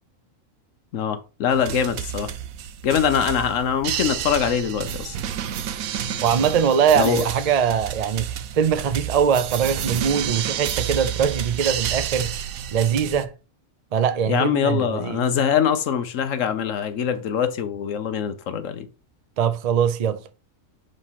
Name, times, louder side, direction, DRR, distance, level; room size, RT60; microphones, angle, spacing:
voice 1, 0.9-2.3 2.8-5.2 6.9-7.3 14.3-18.9, left 8 dB, 70° left, 1.1 m, -23 dB
sound 1, 1.5-13.2, right 9 dB, 90° right, 1.0 m, -30 dB
voice 2, 6.2-12.3 12.7-13.3 13.9-15.2 19.4-20.2, right 7 dB, 65° right, 0.3 m, -22 dB
6.5 x 3.1 x 5.6 m
omnidirectional pair, 1.4 m